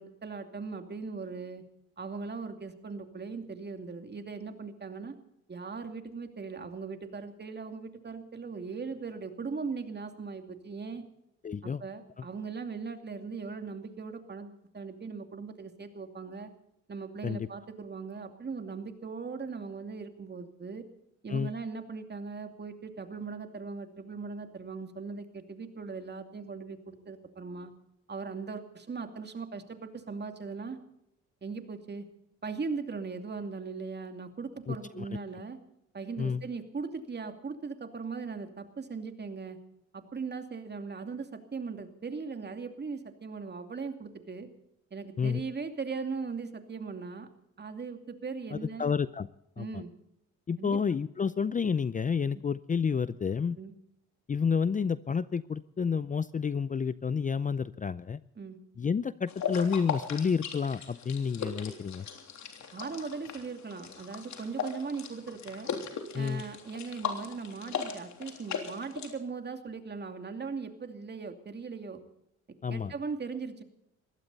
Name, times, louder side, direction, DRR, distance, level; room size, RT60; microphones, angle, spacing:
voice 1, 0.0-1.6 2.0-5.1 5.5-11.0 11.6-16.5 16.9-20.8 21.2-27.7 28.1-30.8 31.4-32.0 32.4-35.6 35.9-39.6 39.9-44.5 44.9-47.3 47.6-48.9 49.6-49.9 50.6-50.8 52.3-52.4 53.6-53.7 58.4-58.6 62.7-65.7 66.1-72.0 72.5-73.6, right 4 dB, 35° right, 7 dB, 2.5 m, -39 dB
voice 2, 11.4-11.8 17.2-17.5 21.3-21.5 34.7-35.1 36.2-36.4 45.2-45.4 48.5-49.3 49.6-49.8 50.5-53.6 54.3-58.2 58.8-62.1 66.1-66.4 72.6-72.9, left 6 dB, 25° left, 16 dB, 0.5 m, -30 dB
sound 1, 59.3-69.1, left 7 dB, 70° left, 3.4 m, -38 dB
21.5 x 16.0 x 4.1 m, 0.79 s
cardioid pair, 90°, 30 cm